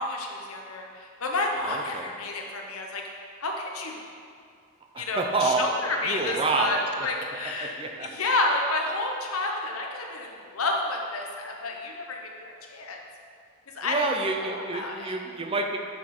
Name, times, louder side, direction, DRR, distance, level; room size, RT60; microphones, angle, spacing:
voice 1, 0.0-3.0 3.4-4.0 5.0-13.0 13.7-14.1 14.4-15.1, left 2 dB, 85° left, 1 dB, 0.9 m, -30 dB
voice 2, 1.6-2.1 4.9-5.7 6.1-7.1 7.6-8.1 13.8-15.8, right 3 dB, 25° right, 3 dB, 0.5 m, -28 dB
6.7 x 5.9 x 4.3 m, 2.3 s
head